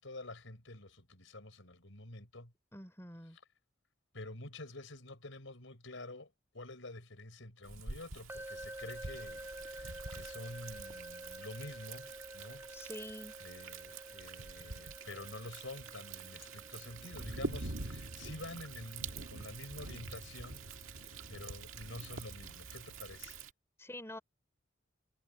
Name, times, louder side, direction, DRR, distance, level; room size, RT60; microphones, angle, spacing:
voice 1, 0.0-2.5 4.1-12.7 13.4-20.7 20.9-23.4, left 2 dB, 70° left, 4.5 m, -48 dB
voice 2, 2.7-3.4 12.7-13.4 23.8-24.2, left 1 dB, 15° left, 3.5 m, -46 dB
Thunder, 7.6-23.5, right 4 dB, 85° right, 1.9 m, -46 dB
sound 1, 8.3-22.1, right 1 dB, 10° right, 3.2 m, -51 dB
head